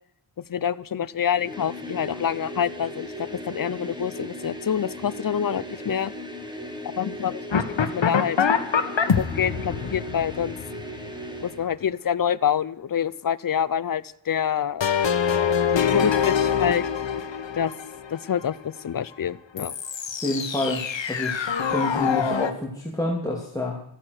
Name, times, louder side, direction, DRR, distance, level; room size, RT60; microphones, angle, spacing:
voice 1, 0.5-6.1 7.0-8.4 9.2-10.6 11.4-14.8 15.7-16.9 17.5-17.7 18.1-19.7, left 8 dB, 45° left, 16 dB, 0.6 m, -26 dB
sound 1, 1.3-11.7, equal, 10° right, 2.1 m, -37 dB
sound 2, 7.5-11.6 14.8-18.6 19.6-22.5, left 7 dB, 65° left, 1.5 m, -25 dB
voice 2, 20.2-23.8, left 1 dB, 5° left, -4 dB, 2.6 m, -28 dB
14.5 x 14.0 x 6.5 m, 0.70 s
wide cardioid pair, 130°, 47 cm